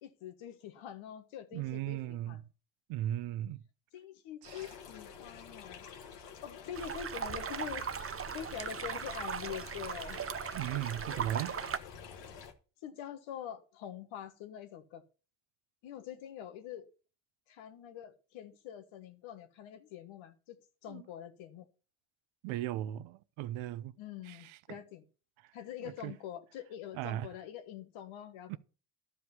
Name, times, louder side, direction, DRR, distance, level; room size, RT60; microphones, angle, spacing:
voice 1, 0.0-2.4 3.9-5.9 6.4-7.9 8.3-10.2 10.7-11.0 12.8-15.0 15.8-16.9 17.5-21.7 24.0-25.0 25.5-28.6, left 9 dB, 75° left, 1.5 m, -45 dB
voice 2, 1.5-2.4 2.9-3.6 4.4-4.7 10.5-11.6 20.9-21.0 22.4-23.9 24.3-24.4 24.7-24.8 26.0-26.1 27.0-27.3 28.5-28.6, right 13 dB, 80° right, 0.8 m, -37 dB
sound 1, 4.4-12.5, left 7 dB, 60° left, 1.8 m, -49 dB
sound 2, 6.7-11.8, right 7 dB, 30° right, 0.7 m, -38 dB
12.0 x 5.0 x 7.0 m
supercardioid pair, 75°, 47 cm